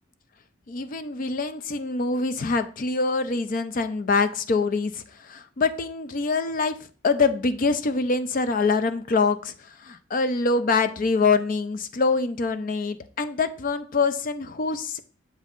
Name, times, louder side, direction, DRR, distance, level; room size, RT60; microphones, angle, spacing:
voice 1, 0.7-6.8 7.0-9.5 9.8-15.0, left 4 dB, 45° left, 11 dB, 0.4 m, -24 dB
7.4 x 5.3 x 2.5 m, 0.41 s
head